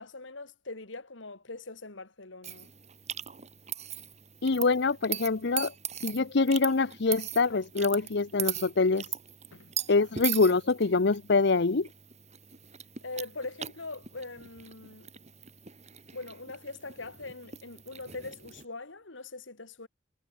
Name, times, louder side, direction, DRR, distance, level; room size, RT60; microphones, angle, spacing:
voice 1, 0.0-2.7 9.5-9.7 10.0-10.1 13.0-15.1 16.1-19.9, left 3 dB, 80° left, 2.7 m, -42 dB
sound 1, 2.4-18.7, right 10 dB, 35° right, 3.2 m, -40 dB
voice 2, 4.4-5.7 6.0-9.0 9.9-11.9, left 3 dB, 60° left, 0.8 m, -25 dB
head